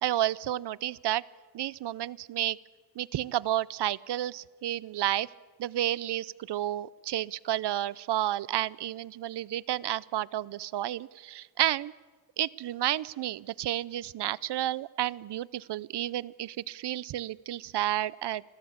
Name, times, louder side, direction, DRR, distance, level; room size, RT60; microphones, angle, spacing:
voice 1, 0.0-1.2 1.5-2.6 3.0-5.3 5.6-11.9 12.4-18.4, right 13 dB, 80° right, 21 dB, 0.6 m, -31 dB
26.5 x 16.5 x 8.7 m, 1.4 s
wide cardioid pair, 105°, 40 cm